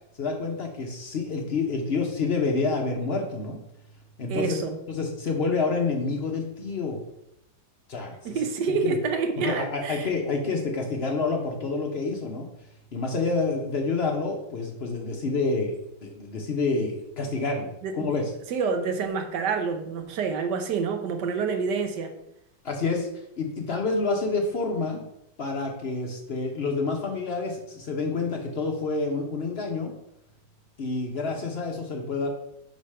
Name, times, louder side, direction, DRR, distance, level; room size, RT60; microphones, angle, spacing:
voice 1, 0.2-3.6 4.2-4.6 4.9-7.0 7.9-8.4 8.7-9.0 9.4-12.5 12.9-15.7 16.0-18.2 22.6-23.1 23.4-25.0 25.4-29.9 30.8-32.3, left 3 dB, 55° left, 2 dB, 0.7 m, -28 dB
voice 2, 4.3-4.8 8.2-10.1 17.8-18.1 18.5-22.1, right 5 dB, 65° right, 6 dB, 1.3 m, -28 dB
4.9 x 4.0 x 5.5 m, 0.80 s
omnidirectional pair, 2.1 m